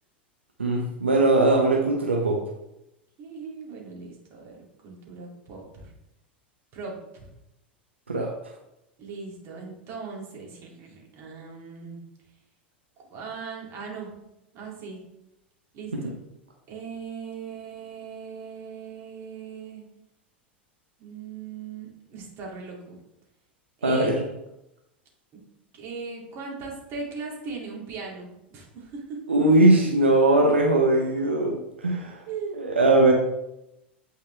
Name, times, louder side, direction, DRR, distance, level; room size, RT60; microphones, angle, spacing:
voice 1, 0.6-2.4 8.1-8.3 23.8-24.2 29.3-32.2 32.6-33.1, right 2 dB, 90° right, 0 dB, 1.0 m, -20 dB
voice 2, 3.2-5.9 6.7-7.3 9.0-12.0 13.1-14.1 14.5-15.0 15.7-16.1 16.7-19.8 21.0-23.0 23.8-24.1 25.7-29.4 32.3-32.6, right 5 dB, 45° right, -2 dB, 2.7 m, -39 dB
8.9 x 4.9 x 3.4 m, 0.88 s
hypercardioid pair, 90°, 6 cm